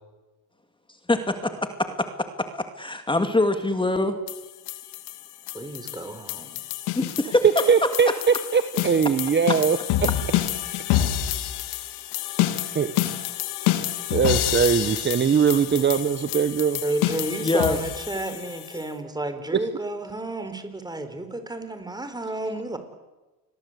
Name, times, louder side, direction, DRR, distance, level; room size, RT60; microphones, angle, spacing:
voice 1, 1.1-1.5 1.8-2.3 2.5-4.2 7.0-7.4 17.4-17.8, left 2 dB, 15° left, 7 dB, 2.5 m, -24 dB
sound 1, 4.3-18.8, left 13 dB, 80° left, 2.8 m, -28 dB
voice 2, 5.5-6.6 16.8-22.8, right 2 dB, 10° right, 9 dB, 4.5 m, -31 dB
voice 3, 7.7-9.8 12.7-12.9 14.1-16.8 19.5-19.6, right 6 dB, 30° right, 11 dB, 1.3 m, -21 dB
28.5 x 22.0 x 8.3 m, 1.1 s
cardioid pair, 100°, 39 cm